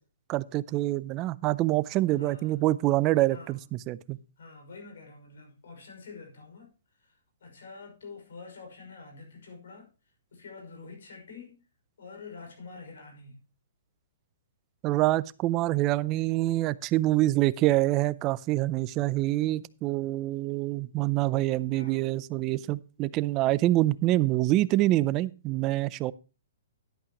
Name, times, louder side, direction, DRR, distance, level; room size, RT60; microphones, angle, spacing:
voice 1, 0.3-4.2 14.8-26.1, right 17 dB, 25° right, 0.5 m, -26 dB
voice 2, 2.2-2.7 3.3-3.7 4.4-6.7 7.0-9.9 10.3-11.6 12.0-13.4 21.7-22.1, left 4 dB, 75° left, 5.7 m, -47 dB
11.5 x 10.5 x 3.0 m
hypercardioid pair, 165°, 0 cm